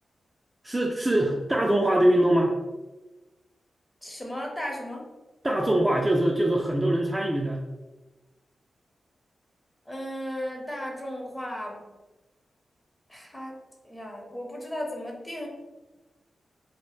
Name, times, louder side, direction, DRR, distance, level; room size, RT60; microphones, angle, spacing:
voice 1, 0.6-2.6 5.4-7.6, right 1 dB, 20° right, -1 dB, 0.3 m, -23 dB
voice 2, 4.0-5.0 9.9-11.8 13.1-13.6 13.8-15.5, equal, 15° left, 0 dB, 0.7 m, -35 dB
2.2 x 2.0 x 3.0 m, 1.1 s
cardioid pair, 50°, 0 cm